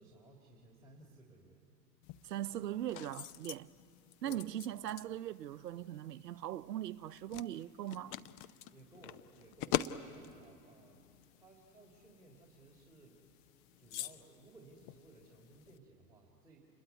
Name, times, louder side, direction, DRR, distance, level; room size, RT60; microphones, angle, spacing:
voice 1, 0.0-1.6 4.0-4.5 8.6-13.2 13.8-16.7, right 2 dB, 5° right, 3.6 m, -60 dB
sound 1, 2.0-15.8, left 12 dB, 40° left, 0.8 m, -45 dB
voice 2, 2.2-3.7 4.2-8.2, right 12 dB, 80° right, 0.7 m, -40 dB
28.5 x 21.5 x 9.5 m
hypercardioid pair, 100°, 49 cm